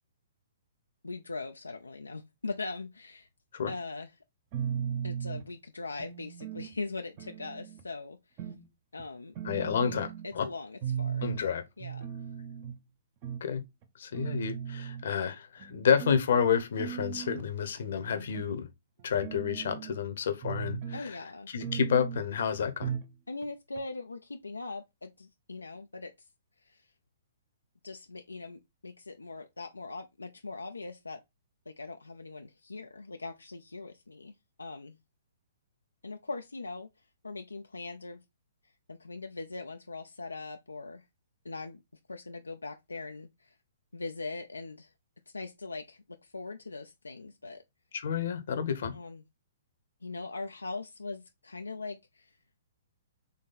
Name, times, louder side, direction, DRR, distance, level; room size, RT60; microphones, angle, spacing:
voice 1, 1.0-3.3 3.7-4.1 5.0-8.5 8.9-9.3 9.8-11.3 11.8-12.1 18.0-18.3 20.9-21.5 23.3-26.3 26.6-26.9 27.8-31.2 31.7-34.3 34.6-35.0 36.0-36.9 37.2-38.2 38.9-41.0 41.4-41.8 42.1-43.6 43.9-44.9 45.3-47.6 48.9-49.2 50.0-52.3, left 3 dB, 85° left, 0.4 m, -41 dB
sound 1, 4.5-5.5 6.0-6.7 7.2-7.8 8.4-8.7 9.0-9.1 9.3-10.3 10.8-11.4 11.8-12.8 13.2-13.4 13.8-13.9 14.1-15.0 15.6-16.2 16.8-17.4 18.0-18.5 19.0-20.0 20.4-21.0 21.6-22.2 22.8-23.1 23.4-23.5 23.7-23.8, right 8 dB, 35° right, 0.8 m, -37 dB
voice 2, 9.4-10.1 10.3-10.5 11.2-11.6 13.4-13.6 14.0-18.7 19.0-21.2 21.5-22.9 47.9-48.9, left 7 dB, 60° left, 0.8 m, -29 dB
4.0 x 3.1 x 4.0 m
figure-of-eight pair, 125°, 0 cm